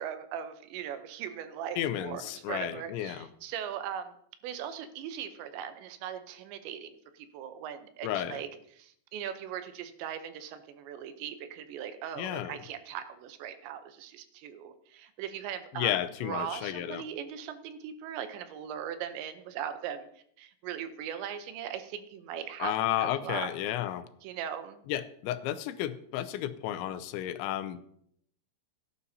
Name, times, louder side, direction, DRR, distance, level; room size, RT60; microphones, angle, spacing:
voice 1, 0.0-4.2 4.4-15.9 16.2-20.1 20.4-22.7 23.0-23.5 24.2-24.8, right 9 dB, 80° right, 9 dB, 3.0 m, -39 dB
voice 2, 1.8-3.3 8.0-8.4 12.2-12.6 15.8-17.0 22.6-24.0 24.9-27.8, left 12 dB, 85° left, 12 dB, 3.1 m, -32 dB
17.0 x 11.0 x 2.8 m, 0.68 s
omnidirectional pair, 5.2 m